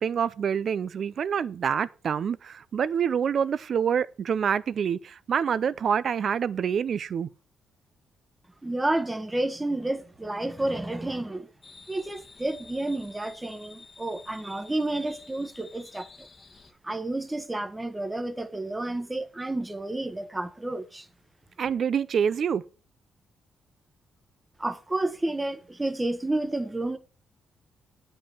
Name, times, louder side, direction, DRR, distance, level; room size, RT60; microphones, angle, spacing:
voice 1, 0.0-7.3 21.6-22.6, right 7 dB, 55° right, 0.5 m, -26 dB
voice 2, 8.6-11.5 11.9-16.3 16.8-21.1 24.6-27.0, right 2 dB, 15° right, 1.1 m, -30 dB
sound 1, 11.6-16.7, left 4 dB, 35° left, 1.3 m, -50 dB
9.1 x 5.4 x 7.1 m
cardioid pair, 100°, 0 cm